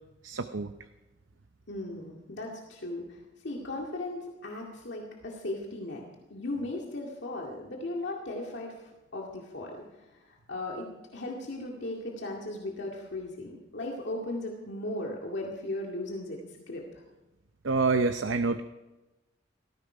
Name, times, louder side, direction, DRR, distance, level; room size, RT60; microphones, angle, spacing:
voice 1, 0.2-0.7 17.6-18.6, right 3 dB, 70° right, 8 dB, 0.7 m, -27 dB
voice 2, 1.7-6.0 6.3-8.8 9.1-16.8, left 2 dB, 65° left, -1 dB, 2.1 m, -37 dB
18.0 x 15.0 x 5.0 m, 1.1 s
head